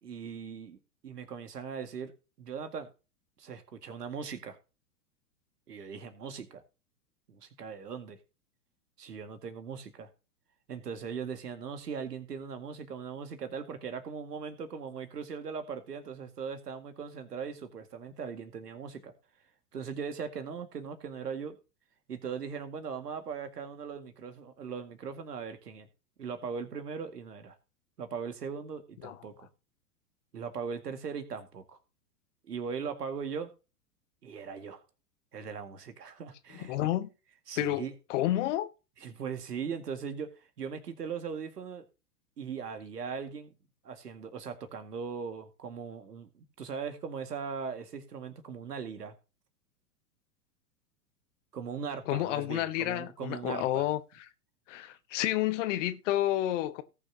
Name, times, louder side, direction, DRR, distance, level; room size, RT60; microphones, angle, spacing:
voice 1, 0.0-0.8 1.0-2.1 2.4-2.9 3.4-4.6 5.7-6.6 7.3-8.2 9.0-10.1 10.7-19.1 19.7-21.6 22.1-25.9 26.2-27.6 28.0-29.3 30.3-31.8 32.4-33.5 34.2-34.8 35.3-36.9 37.5-37.9 39.0-40.3 40.6-41.9 42.4-43.5 43.8-49.1 51.5-53.9, right 6 dB, 75° right, 2.1 m, -39 dB
voice 2, 36.5-37.1 37.6-37.8 38.1-38.7 52.1-54.0 54.7-56.8, left 14 dB, 50° left, 1.2 m, -30 dB
18.5 x 6.2 x 2.9 m
figure-of-eight pair, 100°, 49 cm